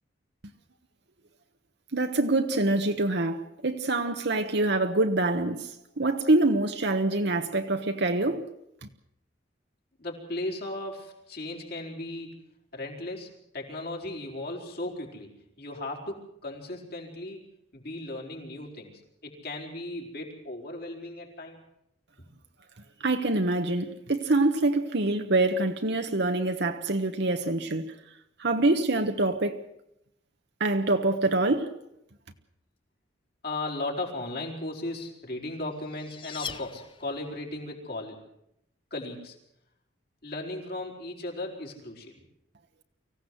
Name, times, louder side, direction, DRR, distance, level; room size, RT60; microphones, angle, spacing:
voice 1, 1.9-5.7 6.0-8.4 8.8-8.9 23.0-27.9 28.4-29.6 30.6-31.7, right 2 dB, 60° right, 1.2 m, -25 dB
voice 2, 10.0-12.4 12.7-15.3 15.6-17.4 17.7-21.6 33.4-38.2 38.9-39.3 40.2-42.2, left 2 dB, 55° left, 4.7 m, -36 dB
sound 1, 35.4-37.5, left 6 dB, 25° left, 0.8 m, -41 dB
24.5 x 16.0 x 7.8 m
head